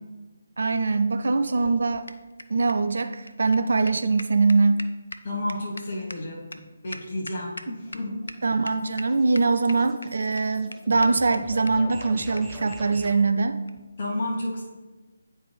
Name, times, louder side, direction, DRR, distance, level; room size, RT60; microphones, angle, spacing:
voice 1, 0.6-2.0 2.5-4.8 8.4-13.6, right 3 dB, 55° right, 10 dB, 0.3 m, -22 dB
sound 1, 1.3-8.0 8.3-8.4 8.6-9.1 9.3-10.1 10.4-10.5 10.7-10.8 11.0-11.1 11.3-11.4 11.7-11.8 12.0-12.1 12.4-12.5 12.7-12.8 13.6-13.8, left 2 dB, 70° left, 0.4 m, -40 dB
voice 2, 5.2-6.4 6.8-8.2 14.0-14.6, left 1 dB, 40° left, -3 dB, 1.1 m, -31 dB
sound 2, 7.8-13.2, right 1 dB, 10° right, 0.6 m, -44 dB
9.3 x 4.5 x 3.2 m, 1.2 s
figure-of-eight pair, 145°, 0 cm